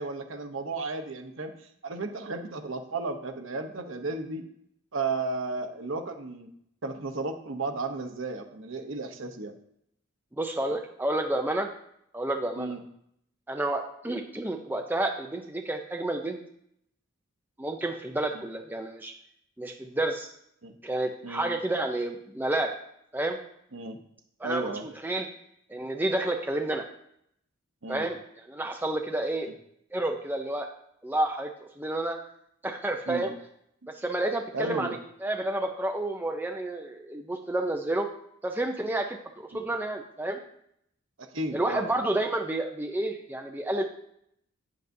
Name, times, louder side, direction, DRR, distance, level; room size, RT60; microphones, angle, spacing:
voice 1, 0.0-1.5 1.8-4.4 4.9-6.5 6.8-9.5 12.6-12.8 20.6-20.7 21.2-21.5 23.7-24.0 24.4-24.8 27.8-28.1 33.1-33.3 34.5-35.0 39.5-39.7 41.2-41.9, right 3 dB, 65° right, 6 dB, 0.9 m, -34 dB
voice 2, 10.4-11.7 12.1-12.7 13.5-16.4 17.6-19.1 19.6-20.3 20.8-22.7 23.1-23.4 24.4-25.3 25.7-26.8 27.9-29.5 29.9-30.7 31.0-32.2 32.6-33.3 33.9-38.1 38.4-40.4 41.5-43.8, right 1 dB, 10° right, 3 dB, 0.5 m, -30 dB
8.9 x 7.5 x 2.7 m, 0.72 s
head